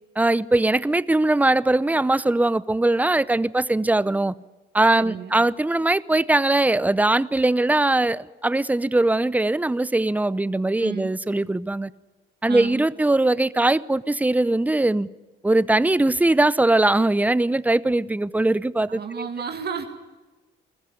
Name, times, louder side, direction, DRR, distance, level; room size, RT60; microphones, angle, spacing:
voice 1, 0.2-4.3 4.7-11.9 12.4-15.1 15.4-19.3, right 2 dB, 10° right, 0.7 m, -21 dB
voice 2, 5.0-5.3 10.8-11.1 12.5-12.8 18.9-19.8, right 6 dB, 55° right, 2.3 m, -32 dB
21.5 x 14.5 x 9.9 m
cardioid pair, 90°, 20 cm